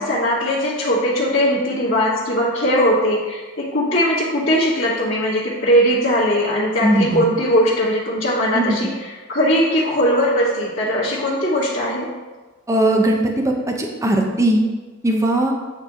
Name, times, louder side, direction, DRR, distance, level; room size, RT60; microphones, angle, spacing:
voice 1, 0.0-12.1, equal, 70° left, -10 dB, 1.5 m, -19 dB
voice 2, 6.8-7.2 8.5-8.8 12.7-14.6 15.0-15.5, right 1 dB, 15° right, 1 dB, 0.6 m, -18 dB
8.9 x 3.1 x 3.6 m, 1.2 s
head